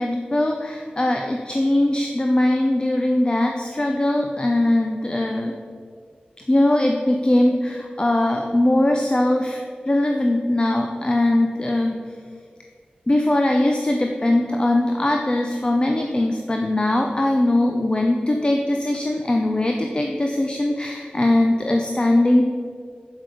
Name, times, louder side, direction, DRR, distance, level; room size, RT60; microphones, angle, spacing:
voice 1, 0.0-5.6 6.5-12.0 13.1-22.4, left 1 dB, 30° left, 2 dB, 0.7 m, -20 dB
8.5 x 7.7 x 4.9 m, 2.1 s
wide cardioid pair, 55°, 3 cm